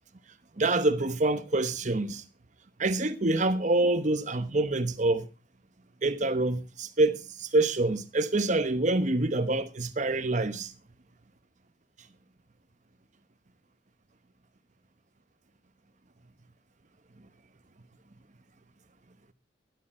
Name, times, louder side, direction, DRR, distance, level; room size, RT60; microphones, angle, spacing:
voice 1, 0.6-2.2 2.8-5.3 6.0-10.7, right 2 dB, 40° right, 1.0 m, -26 dB
12.0 x 11.5 x 4.3 m
head